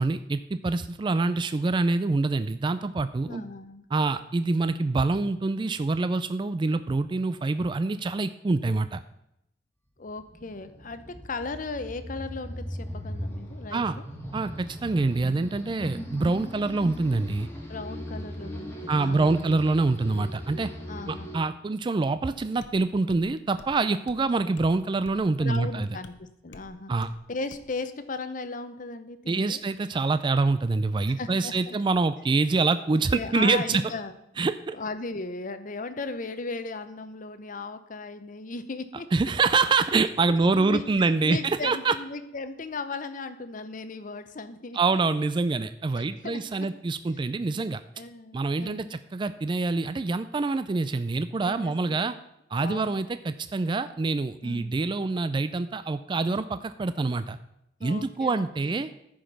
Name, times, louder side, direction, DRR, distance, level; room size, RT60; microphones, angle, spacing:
voice 1, 0.0-3.4 3.9-9.0 13.7-13.9 14.3-17.5 18.9-20.7 21.1-25.9 26.9-27.1 29.3-33.8 34.4-34.8 39.1-41.4 41.6-41.9 44.7-47.8 48.3-52.1 52.5-57.4 57.8-58.9, right 3 dB, 25° right, 12 dB, 0.3 m, -26 dB
voice 2, 3.2-3.8 10.0-14.0 15.9-16.1 17.7-19.5 20.9-21.4 25.4-26.9 27.3-29.6 31.1-31.8 33.1-34.1 34.7-39.1 40.4-45.0 46.0-46.7 48.0-49.0 51.5-52.1 52.6-53.0 54.4-54.7 57.8-58.8, left 3 dB, 45° left, 11 dB, 0.8 m, -37 dB
sound 1, 10.1-21.4, equal, 15° left, 1.7 m, -39 dB
sound 2, 22.6-22.8 23.1-23.3 23.6-23.8 24.1-24.2 24.6-24.7 25.1-25.2 25.5-25.7 26.0-26.2 26.5-26.7 27.0-27.2 27.5-27.7, left 2 dB, 85° left, 0.9 m, -48 dB
14.0 x 5.2 x 5.9 m, 0.82 s
head